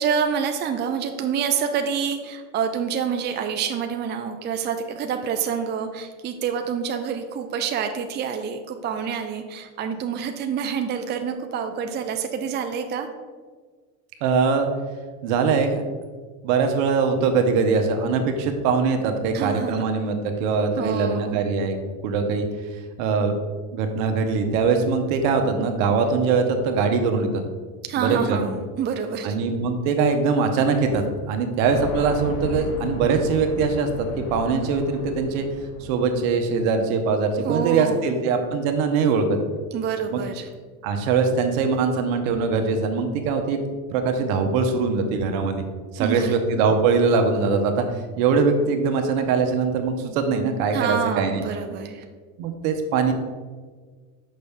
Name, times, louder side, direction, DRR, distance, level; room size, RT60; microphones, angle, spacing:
voice 1, 0.0-13.1 19.3-19.9 20.8-21.4 27.9-29.4 37.4-38.1 39.7-40.5 46.0-46.3 50.7-52.0, right 7 dB, 25° right, 6 dB, 0.5 m, -27 dB
voice 2, 14.2-14.7 15.2-15.8 16.4-21.8 22.0-22.4 23.0-23.4 23.7-27.4 28.0-28.5 29.2-35.5 35.8-39.4 40.1-40.2 40.8-43.6 43.9-45.6 45.9-47.8 48.2-51.4 52.4-53.1, right 5 dB, 70° right, 6 dB, 1.1 m, -22 dB
sound 1, 31.7-36.6, left 3 dB, 35° left, 1.1 m, -34 dB
6.5 x 5.5 x 3.5 m, 1.5 s
supercardioid pair, 105°, 43 cm